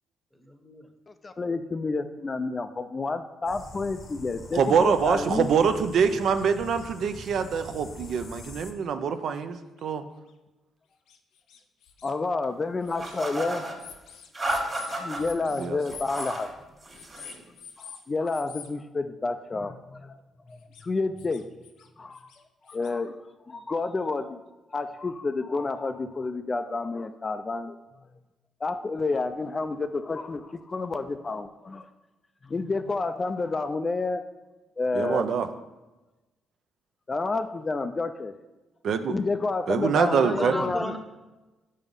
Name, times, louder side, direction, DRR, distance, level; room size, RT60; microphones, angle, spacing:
voice 1, 0.4-0.9 40.0-41.0, equal, ahead, 5 dB, 0.9 m, -34 dB
voice 2, 1.1-5.5 12.0-13.6 15.0-16.5 17.8-20.2 20.5-21.4 22.0-22.3 22.7-23.2 23.5-24.4 24.7-27.8 28.6-31.9 32.4-34.2 34.8-35.3 37.1-38.3 39.1-41.0, left 3 dB, 30° left, 9 dB, 0.4 m, -29 dB
sound 1, 3.5-8.7, left 2 dB, 45° left, 0.8 m, -44 dB
voice 3, 4.5-10.0 15.6-15.8 34.9-35.5 38.8-39.2 39.7-40.7, right 6 dB, 65° right, 9 dB, 0.5 m, -25 dB
sound 2, 6.4-6.5 6.8-6.9 7.7-7.8 8.1-8.2 8.8-8.9 9.8-9.9 10.3-10.4 11.1-12.1 12.8-13.2 13.8-16.4 16.9-18.0 18.3-18.7 20.5-20.8 21.2-21.9 22.1-22.9, left 7 dB, 85° left, 0.6 m, -46 dB
sound 3, 13.0-13.8 14.3-15.2 15.8-16.5 16.8-17.4, right 1 dB, 30° right, 1.5 m, -32 dB
5.5 x 4.8 x 5.3 m, 1.1 s
cardioid pair, 90°, 0 cm